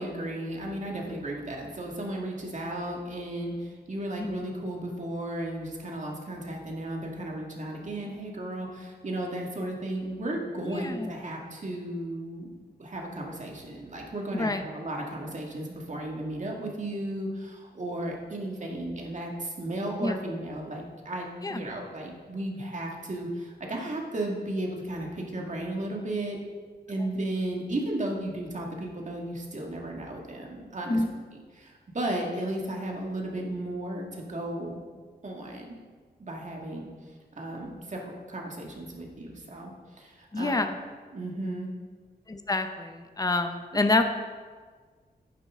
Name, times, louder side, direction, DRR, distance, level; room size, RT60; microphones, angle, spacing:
voice 1, 0.0-26.4 26.9-31.0 31.5-34.8 35.2-35.8 36.2-36.9 37.4-40.7 41.1-41.7 43.7-43.9, right 1 dB, 45° right, -1 dB, 2.1 m, -34 dB
voice 2, 10.6-11.1 14.3-14.6 20.0-20.1 21.4-21.6 30.9-31.1 40.3-40.8 42.3-44.0, left 2 dB, 20° left, 7 dB, 0.8 m, -27 dB
10.5 x 9.7 x 3.7 m, 1.5 s
wide cardioid pair, 95°, 18 cm